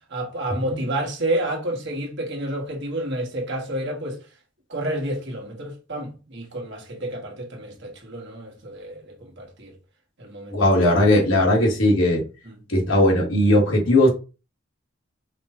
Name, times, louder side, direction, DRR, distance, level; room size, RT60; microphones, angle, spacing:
voice 1, 0.1-4.2 4.7-9.7 10.2-10.8, right 1 dB, 55° right, 1.4 m, -30 dB
voice 2, 10.5-12.2 12.7-14.1, left 1 dB, 70° left, 1.7 m, -18 dB
5.1 x 2.3 x 4.2 m
head